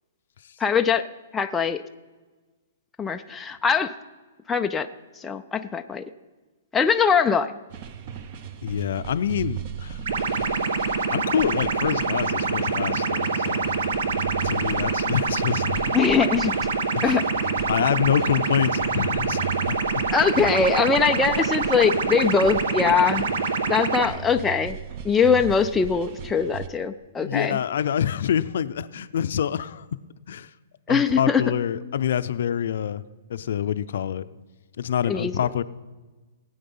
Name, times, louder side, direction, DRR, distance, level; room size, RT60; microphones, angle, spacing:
voice 1, 0.6-1.1 1.3-1.8 3.0-3.9 4.5-4.9 5.2-6.0 6.7-7.5 10.0-10.1 15.9-16.5 17.0-17.7 20.1-23.4 23.7-24.8 25.0-27.6 30.9-31.4 35.1-35.3, left 6 dB, 5° left, 5 dB, 0.3 m, -22 dB
sound 1, 7.7-26.7, right 9 dB, 30° right, 0.7 m, -37 dB
voice 2, 8.6-10.0 11.1-13.8 14.4-15.8 16.9-17.2 17.7-19.4 19.7-19.8 22.8-22.9 27.2-29.9 30.3-30.5 30.9-33.0 33.3-34.2 34.8-35.6, left 9 dB, 55° left, 14 dB, 0.5 m, -26 dB
sound 2, 10.1-24.1, right 4 dB, 70° right, 1.2 m, -25 dB
19.0 x 8.6 x 5.5 m, 1.3 s
hypercardioid pair, 170°, 0 cm